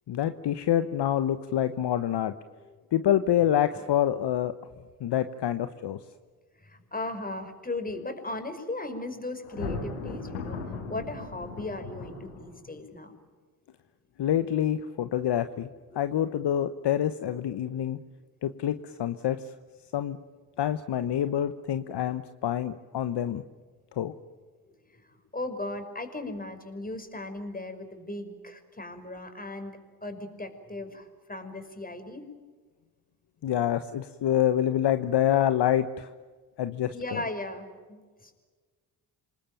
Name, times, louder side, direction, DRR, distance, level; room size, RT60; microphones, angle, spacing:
voice 1, 0.1-2.3 2.9-4.5 5.0-6.0 14.2-15.7 15.9-18.0 18.4-19.4 19.9-20.2 20.6-23.4 24.0-24.1 33.4-36.1 36.6-37.2, left 11 dB, 55° left, 11 dB, 1.2 m, -26 dB
voice 2, 6.6-10.6 10.9-13.2 15.9-16.1 24.6-32.3 36.9-38.3, left 2 dB, 15° left, 7 dB, 5.5 m, -37 dB
Thunder, 9.4-12.8, left 4 dB, 85° left, 5.4 m, -37 dB
28.0 x 20.0 x 9.1 m, 1.4 s
hypercardioid pair, 50°, 50 cm